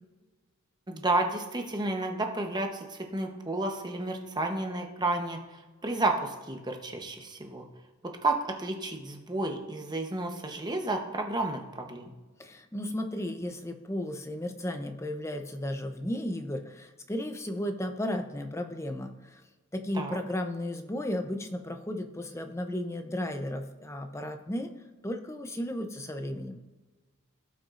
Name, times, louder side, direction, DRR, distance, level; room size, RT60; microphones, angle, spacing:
voice 1, 0.9-7.7 8.0-12.1 19.9-20.2, right 2 dB, 20° right, 3 dB, 0.9 m, -31 dB
voice 2, 12.4-19.4 19.7-24.7 25.0-26.6, left 1 dB, 15° left, 6 dB, 0.6 m, -34 dB
16.5 x 5.9 x 2.5 m, 1.3 s
head